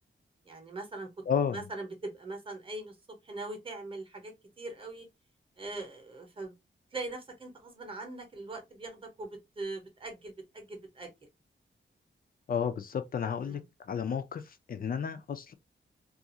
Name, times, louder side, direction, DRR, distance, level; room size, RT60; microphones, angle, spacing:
voice 1, 0.5-1.1 1.5-2.9 3.3-5.1 5.6-6.5 6.9-11.1 13.5-13.6, right 2 dB, 25° right, 0.8 m, -41 dB
voice 2, 1.3-1.7 12.5-13.6 13.9-15.5, left 7 dB, 45° left, 0.4 m, -32 dB
2.4 x 2.3 x 2.7 m
wide cardioid pair, 175°, 20 cm